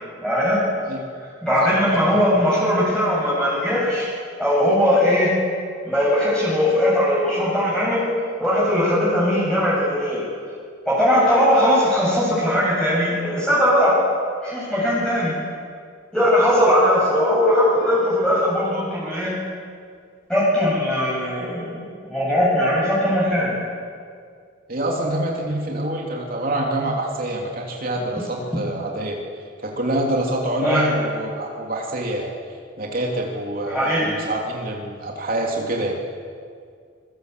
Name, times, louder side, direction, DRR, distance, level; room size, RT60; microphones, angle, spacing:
voice 1, 0.2-0.6 1.4-4.1 4.4-5.3 5.8-8.0 8.4-10.2 10.9-13.9 14.4-15.3 16.1-19.3 20.3-23.6 28.2-28.3 30.6-30.9 33.7-34.1, equal, 5° left, -8 dB, 7.7 m, -19 dB
voice 2, 1.6-2.1 24.7-29.2 29.6-32.3 32.8-36.0, right 1 dB, 50° right, -1 dB, 3.2 m, -26 dB
27.0 x 23.0 x 8.4 m, 2.1 s
head